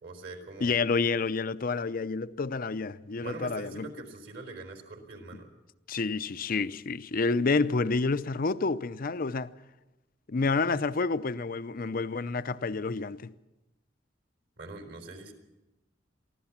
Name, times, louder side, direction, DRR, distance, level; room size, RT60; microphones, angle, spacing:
voice 1, 0.0-0.8 3.2-5.5 14.6-15.3, right 2 dB, 60° right, 4.1 m, -43 dB
voice 2, 0.6-3.9 5.9-9.5 10.3-13.3, left 4 dB, 50° left, 0.6 m, -29 dB
23.5 x 15.5 x 7.3 m
head